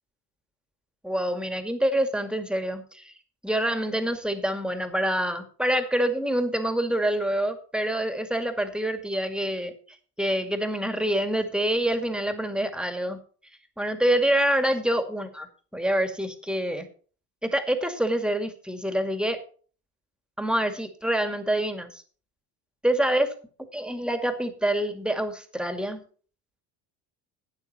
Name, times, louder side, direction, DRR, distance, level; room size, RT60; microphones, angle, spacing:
voice 1, 1.0-3.1 3.4-9.7 10.2-13.2 13.8-15.5 15.7-16.9 17.4-19.4 20.4-22.0 22.8-23.3 23.7-26.1, right 1 dB, ahead, 8 dB, 2.3 m, -26 dB
12.5 x 9.1 x 4.4 m, 0.41 s
hypercardioid pair, 80°, 48 cm